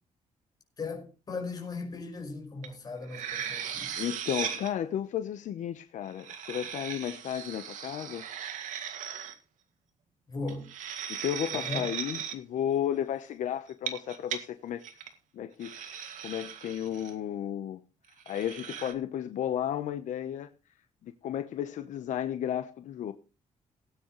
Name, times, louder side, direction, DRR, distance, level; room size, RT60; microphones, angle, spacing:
voice 1, 0.8-3.9 10.3-10.7 11.5-11.9, left 3 dB, 30° left, 5.2 m, -38 dB
sound 1, 2.6-2.7 3.0-4.7 6.0-9.3 10.5-12.4 13.7-14.4 14.8-15.1 15.6-17.1 18.2-18.9, right 8 dB, 85° right, 2.3 m, -38 dB
voice 2, 4.0-8.2 11.1-14.8 15.3-17.8 18.3-20.5 21.0-23.1, left 10 dB, 75° left, 1.0 m, -33 dB
18.5 x 9.3 x 3.2 m
cardioid pair, 155°, 13 cm